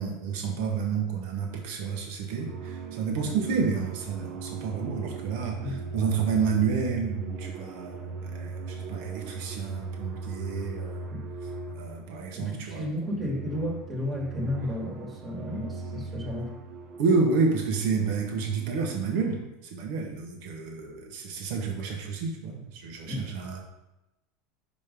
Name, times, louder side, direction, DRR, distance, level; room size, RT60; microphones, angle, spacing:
voice 1, 0.0-11.1 11.7-12.9 17.0-23.6, right 5 dB, 70° right, 1 dB, 1.5 m, -30 dB
sound 1, 1.6-1.9 2.3-12.4 12.9-19.5, right 4 dB, 50° right, 1.0 m, -39 dB
voice 2, 12.3-16.6 23.1-23.3, left 1 dB, 25° right, 0 dB, 2.1 m, -33 dB
5.4 x 5.3 x 5.3 m, 0.95 s
supercardioid pair, 110°, 0 cm